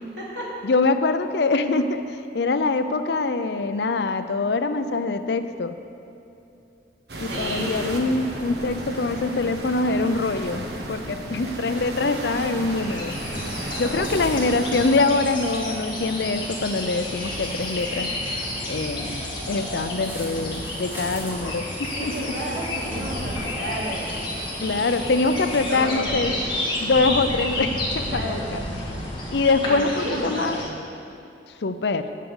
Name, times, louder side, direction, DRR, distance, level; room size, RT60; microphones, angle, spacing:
voice 1, 0.0-0.5 7.2-7.9 13.6-14.0 21.9-24.4 25.3-26.5 28.1-28.5 29.6-30.8, right 1 dB, 85° right, -6 dB, 2.9 m, -33 dB
voice 2, 0.6-5.8 7.2-13.2 13.8-18.1 18.7-19.2 19.5-22.3 24.6-26.3 26.8-28.6 29.3-30.6 31.6-32.1, left 3 dB, 70° left, 10 dB, 0.5 m, -24 dB
sound 1, 7.1-14.9, right 1 dB, 65° right, 1.3 m, -33 dB
sound 2, 12.7-30.6, left 1 dB, 25° left, 1.9 m, -31 dB
sound 3, 13.1-25.8, equal, 15° right, 2.2 m, -37 dB
9.4 x 7.5 x 7.1 m, 2.7 s
head